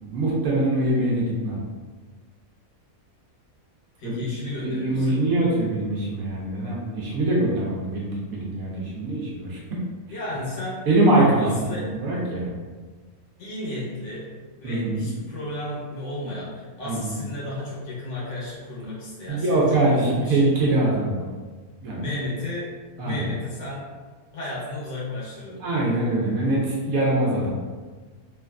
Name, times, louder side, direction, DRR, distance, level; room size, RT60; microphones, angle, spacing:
voice 1, 0.0-1.6 4.0-4.1 4.6-9.6 10.9-12.5 14.6-15.1 16.8-17.2 19.3-21.2 21.8-22.0 23.0-23.2 25.6-27.5, right 2 dB, 70° right, -4 dB, 1.1 m, -23 dB
voice 2, 4.0-5.2 10.1-10.9 11.4-11.9 13.4-14.3 14.6-20.4 22.0-22.7 23.0-23.8 24.3-25.7, left 1 dB, 60° left, -6 dB, 1.0 m, -33 dB
3.2 x 2.4 x 2.2 m, 1.4 s
omnidirectional pair, 1.6 m